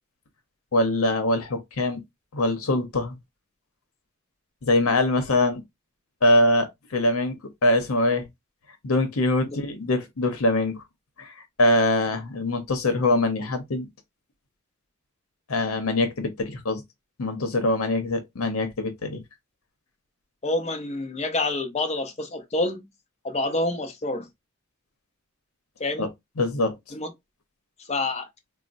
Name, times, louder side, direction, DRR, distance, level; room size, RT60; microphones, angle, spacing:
voice 1, 0.7-2.0 2.3-3.2 4.6-5.6 6.2-8.3 8.8-10.8 11.2-11.3 11.6-13.9 15.5-16.8 17.2-19.2 26.0-26.1 26.4-26.8, left 1 dB, 85° left, 0.8 m, -23 dB
voice 2, 20.4-22.9 23.2-24.3 25.8-26.1 26.9-27.1 27.9-28.3, left 2 dB, 30° left, 0.6 m, -27 dB
4.1 x 2.1 x 2.5 m
head